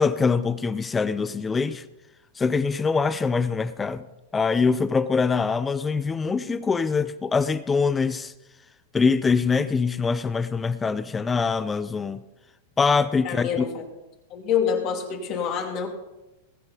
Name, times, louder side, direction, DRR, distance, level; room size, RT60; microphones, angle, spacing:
voice 1, 0.0-1.8 2.4-4.0 4.3-8.3 8.9-12.2 12.8-13.7, left 5 dB, 15° left, 0.5 m, -23 dB
voice 2, 13.2-13.8 14.3-15.9, left 7 dB, 40° left, 2.7 m, -26 dB
20.0 x 8.0 x 5.3 m
supercardioid pair, 145°, 0 cm